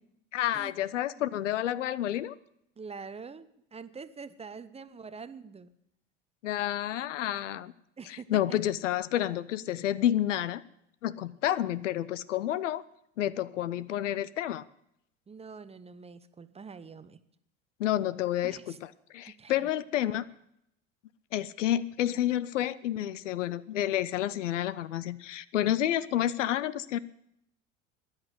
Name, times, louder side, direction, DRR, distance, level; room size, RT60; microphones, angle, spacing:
voice 1, 0.3-2.3 6.4-7.7 8.3-10.6 11.0-12.8 13.2-14.6 17.8-18.6 19.1-20.2 21.3-27.0, left 12 dB, 70° left, 18 dB, 0.7 m, -29 dB
voice 2, 2.8-5.7 8.0-8.6 15.3-17.2 18.4-18.8 19.3-19.7, right 5 dB, 15° right, 13 dB, 0.8 m, -45 dB
13.5 x 10.5 x 7.7 m, 0.77 s
figure-of-eight pair, 75°, 38 cm